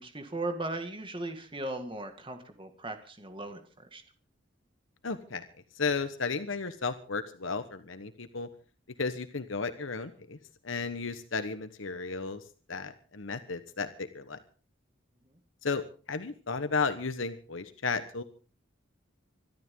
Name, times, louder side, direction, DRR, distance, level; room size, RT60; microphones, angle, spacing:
voice 1, 0.0-3.6 3.9-4.0, right 2 dB, 25° right, 6 dB, 2.0 m, -37 dB
voice 2, 5.0-5.4 5.7-8.5 9.0-10.4 10.6-12.4 12.7-14.4 15.6-18.2, left 4 dB, 75° left, 10 dB, 1.2 m, -34 dB
25.5 x 12.5 x 3.8 m, 0.38 s
head